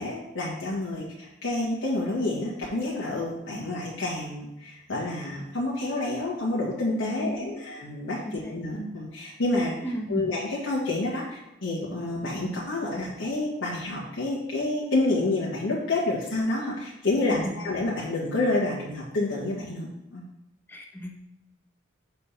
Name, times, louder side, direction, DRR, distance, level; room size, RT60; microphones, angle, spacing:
voice 1, 0.0-9.8 10.1-20.2, left 2 dB, 75° left, -5 dB, 1.6 m, -29 dB
voice 2, 7.0-7.6 8.2-8.6 9.8-10.3 17.2-17.6 20.7-21.2, equal, 10° left, -1 dB, 1.0 m, -34 dB
6.6 x 3.5 x 5.7 m, 0.93 s
head